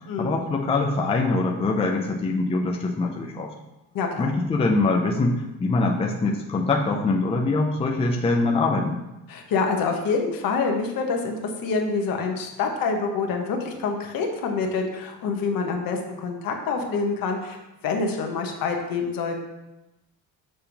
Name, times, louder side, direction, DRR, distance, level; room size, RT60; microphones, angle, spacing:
voice 1, 0.2-3.5 4.2-9.0, left 3 dB, 15° left, 1 dB, 0.5 m, -23 dB
voice 2, 3.9-4.3 9.3-11.4 11.6-19.4, left 4 dB, 65° left, 3 dB, 1.2 m, -26 dB
6.8 x 3.5 x 5.8 m, 0.97 s
cardioid pair, 150°, 37 cm